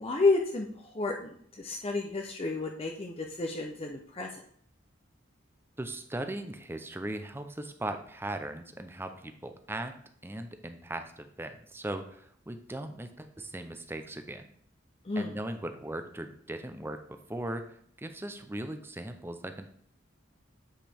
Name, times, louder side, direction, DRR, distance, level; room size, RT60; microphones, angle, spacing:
voice 1, 0.0-4.3 15.1-15.3, left 3 dB, 30° left, 1 dB, 0.6 m, -31 dB
voice 2, 5.8-9.9 10.2-14.4 15.2-19.7, right 1 dB, 10° right, 7 dB, 0.6 m, -38 dB
8.7 x 5.1 x 3.5 m, 0.63 s
head